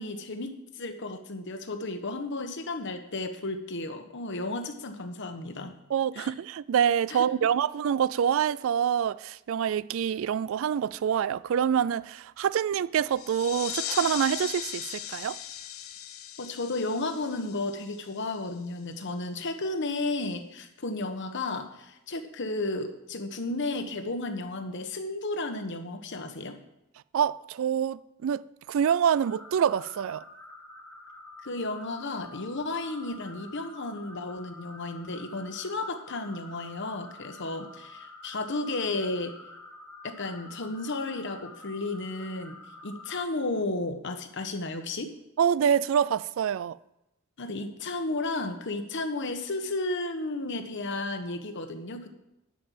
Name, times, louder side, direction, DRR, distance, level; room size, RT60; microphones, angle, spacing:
voice 1, 0.0-5.8 6.1-6.3 7.1-7.2 16.4-26.6 31.4-39.3 40.0-45.1 47.4-52.1, left 2 dB, 60° left, 1.1 m, -33 dB
voice 2, 5.9-15.4 27.1-28.4 28.7-30.2 45.4-46.8, right 8 dB, 65° right, 0.3 m, -26 dB
sound 1, 13.1-18.4, left 11 dB, 85° left, 0.8 m, -38 dB
sound 2, 29.2-43.3, left 2 dB, 5° left, 1.4 m, -48 dB
11.0 x 5.3 x 7.5 m
head